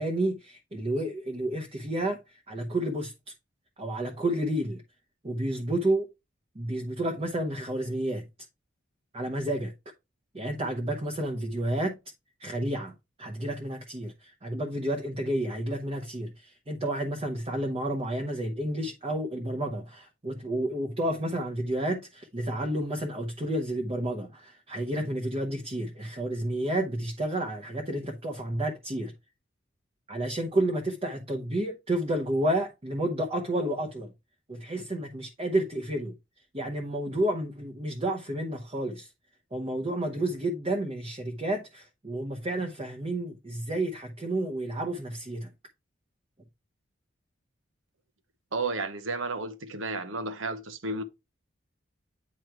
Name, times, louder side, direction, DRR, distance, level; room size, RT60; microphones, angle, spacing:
voice 1, 0.0-3.1 3.8-4.8 5.2-6.1 6.5-8.3 9.1-9.7 10.3-12.0 12.4-29.1 30.1-34.1 34.5-36.1 36.5-39.1 39.5-45.5, right 1 dB, 30° right, 0.9 m, -30 dB
voice 2, 48.5-51.0, right 3 dB, 75° right, 0.9 m, -32 dB
9.1 x 3.1 x 4.5 m
head